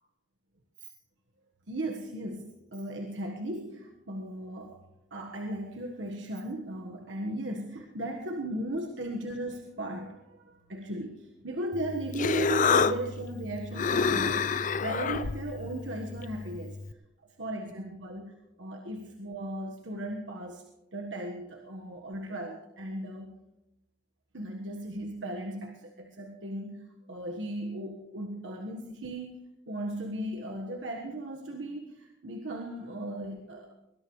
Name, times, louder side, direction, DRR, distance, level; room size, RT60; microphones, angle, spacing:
voice 1, 1.7-4.8 5.1-16.8 17.4-20.6 20.9-23.3 24.3-29.3 29.7-33.7, right 1 dB, 80° right, 2 dB, 1.4 m, -37 dB
Human voice, 11.7-16.9, left 5 dB, 45° left, 0.5 m, -29 dB
21.0 x 20.5 x 3.2 m, 0.94 s
head